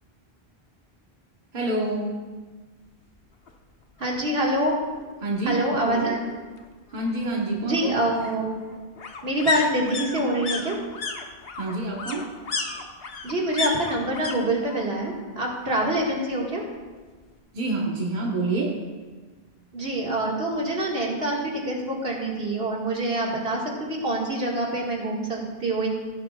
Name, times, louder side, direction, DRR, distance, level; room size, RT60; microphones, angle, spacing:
voice 1, 1.5-2.1 5.2-5.6 5.8-6.2 6.9-7.8 11.6-12.3 17.5-18.7, right 2 dB, 50° right, -2 dB, 1.4 m, -27 dB
sound 1, 3.5-3.6 3.9-4.0 4.3-5.3 6.6-14.4 14.6-15.2 15.5-16.5 16.8-16.9, left 4 dB, 70° left, 1.2 m, -33 dB
voice 2, 4.0-4.8 5.4-6.4 7.6-8.7 9.2-10.8 13.2-16.6 19.7-25.9, right 1 dB, 75° right, -3 dB, 2.1 m, -26 dB
16.0 x 10.0 x 2.3 m, 1.4 s
omnidirectional pair, 1.0 m